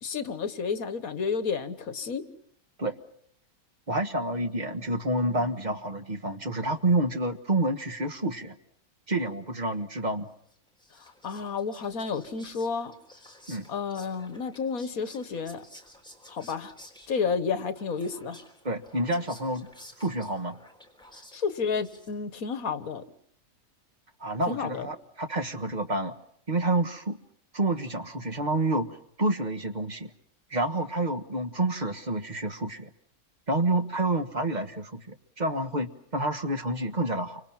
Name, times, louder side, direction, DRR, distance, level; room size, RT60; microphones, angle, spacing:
voice 1, 0.0-2.2 10.9-12.9 13.7-15.6 16.3-16.7 17.1-18.4 21.3-23.0 24.5-24.9, left 5 dB, 75° left, 12 dB, 1.8 m, -31 dB
voice 2, 3.9-8.6 9.1-10.3 13.5-13.7 18.6-19.7 20.0-20.6 24.2-26.1 26.5-27.2 27.5-30.1 30.5-32.9 33.5-37.4, right 2 dB, 30° right, 7 dB, 1.5 m, -28 dB
Whispering, 10.5-22.4, left 1 dB, 5° left, 3.8 m, -53 dB
29.0 x 25.0 x 5.9 m, 0.69 s
omnidirectional pair, 1.5 m